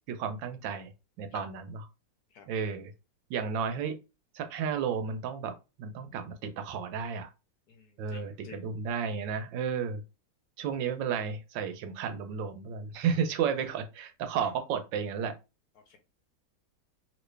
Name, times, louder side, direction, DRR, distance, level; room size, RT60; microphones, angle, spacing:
voice 1, 0.1-0.9 1.2-1.8 2.5-2.9 3.3-4.0 4.3-5.5 5.8-7.3 8.0-10.0 10.6-15.3, right 7 dB, 80° right, 1.3 m, -32 dB
voice 2, 7.7-8.6 15.9-16.0, left 5 dB, 65° left, 1.1 m, -48 dB
3.0 x 2.8 x 3.2 m
omnidirectional pair, 2.0 m